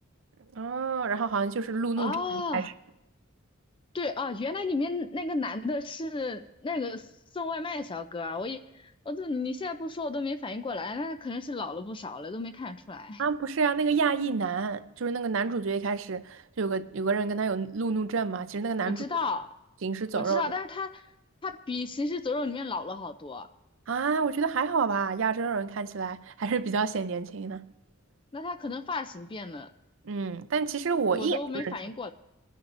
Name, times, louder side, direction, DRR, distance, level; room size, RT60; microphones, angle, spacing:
voice 1, 0.5-2.7 13.2-19.0 19.8-20.5 23.9-27.7 30.0-31.8, right 5 dB, 70° right, 0.5 m, -29 dB
voice 2, 2.0-2.7 3.9-13.2 18.8-19.5 20.1-21.1 21.4-23.5 28.3-29.7 31.1-32.1, left 3 dB, 25° left, 0.4 m, -33 dB
22.0 x 10.0 x 2.6 m
head